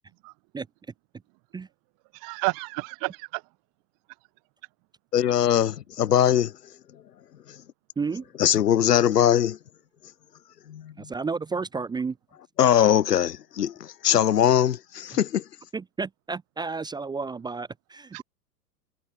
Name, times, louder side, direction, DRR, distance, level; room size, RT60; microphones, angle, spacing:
voice 1, 2.1-3.4 18.1-18.2, right 33 dB, 40° right, 2.9 m, -30 dB
voice 2, 5.1-6.5 8.4-9.6 10.7-11.1 12.6-15.4, left 10 dB, 75° left, 0.9 m, -21 dB
voice 3, 11.0-12.2 15.7-18.2, right 4 dB, 10° right, 0.7 m, -31 dB
figure-of-eight pair, 95°, 48 cm